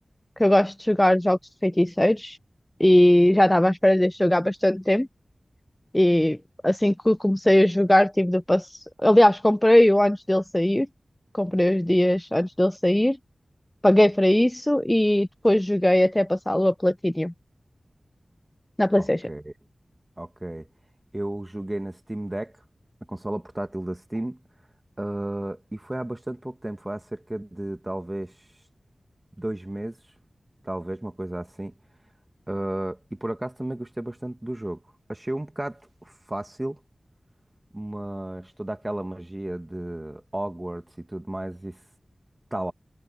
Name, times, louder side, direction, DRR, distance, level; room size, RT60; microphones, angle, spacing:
voice 1, 0.4-2.4 2.8-5.1 5.9-6.4 6.6-8.7 9.0-10.9 11.3-13.2 13.8-17.3 18.8-19.2, left 1 dB, 15° left, 0.4 m, -20 dB
voice 2, 19.0-19.5 20.2-20.7 21.1-22.5 23.1-24.4 25.0-28.4 29.4-30.0 30.6-31.7 32.5-34.8 35.1-36.8 37.7-41.8 42.5-42.7, right 1 dB, 20° right, 1.8 m, -33 dB
wide cardioid pair, 60°, 0 cm